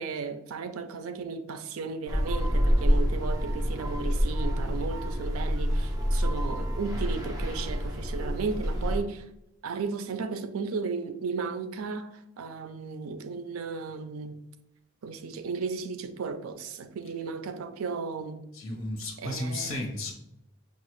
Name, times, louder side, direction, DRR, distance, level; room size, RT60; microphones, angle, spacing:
voice 1, 0.0-9.3 9.6-14.4 15.0-18.4 19.2-19.7, right 4 dB, 85° right, 0.4 m, -35 dB
sound 1, 2.1-9.0, equal, 20° right, 0.7 m, -27 dB
voice 2, 18.5-20.1, left 1 dB, 75° left, 0.9 m, -34 dB
5.6 x 2.4 x 3.0 m
head